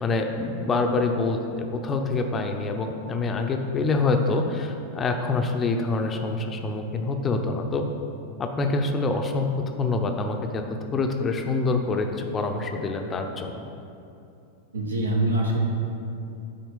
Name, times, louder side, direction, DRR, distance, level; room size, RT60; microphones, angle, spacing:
voice 1, 0.0-7.8 8.4-9.5 9.8-13.7, left 3 dB, 20° left, 4 dB, 0.6 m, -26 dB
voice 2, 14.7-15.7, right 2 dB, 75° right, 0 dB, 1.1 m, -24 dB
9.3 x 4.2 x 5.2 m, 2.7 s
figure-of-eight pair, 90°, 0 cm